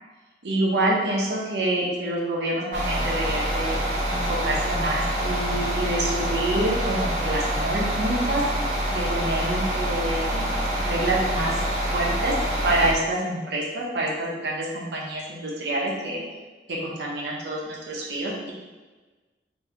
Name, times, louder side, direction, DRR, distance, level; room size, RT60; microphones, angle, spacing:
voice 1, 0.4-3.8 4.1-8.4 8.9-11.5 11.9-12.4 12.6-16.2 16.7-18.5, right 1 dB, 75° right, -3 dB, 0.8 m, -27 dB
sound 1, 2.7-12.9, equal, 45° right, 0.8 m, -26 dB
3.0 x 2.6 x 3.7 m, 1.3 s
head